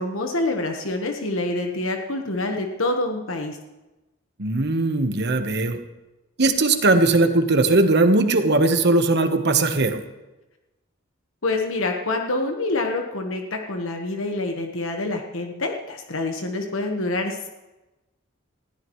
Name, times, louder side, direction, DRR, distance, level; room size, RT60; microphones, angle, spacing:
voice 1, 0.0-3.6 11.4-17.5, left 2 dB, 70° left, 3 dB, 1.4 m, -26 dB
voice 2, 4.4-5.8 6.4-10.0, right 2 dB, 55° right, 7 dB, 1.2 m, -19 dB
20.5 x 15.0 x 3.2 m, 1.0 s
head